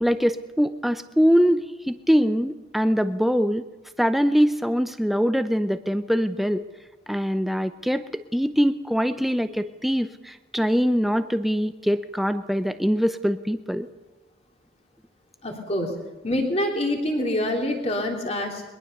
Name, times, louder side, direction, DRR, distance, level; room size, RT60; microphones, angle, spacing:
voice 1, 0.0-3.6 4.0-6.6 7.1-13.9, equal, ahead, 10 dB, 0.6 m, -23 dB
voice 2, 15.4-15.9 16.2-18.6, left 1 dB, 35° left, 1 dB, 3.3 m, -26 dB
22.0 x 21.5 x 6.7 m, 1.2 s
head